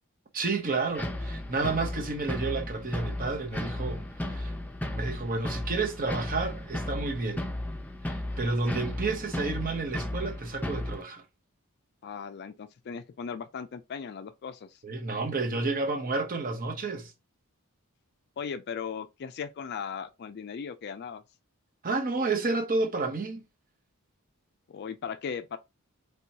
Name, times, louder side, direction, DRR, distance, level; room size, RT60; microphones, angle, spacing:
voice 1, 0.3-4.5 4.9-7.5 8.1-11.2 14.8-17.1 21.8-23.5, right 3 dB, 40° right, 0.9 m, -30 dB
sound 1, 0.9-11.0, left 1 dB, 5° left, 0.6 m, -34 dB
voice 2, 12.0-14.8 18.4-21.2 24.7-25.6, left 6 dB, 50° left, 0.4 m, -37 dB
4.5 x 3.3 x 2.7 m
head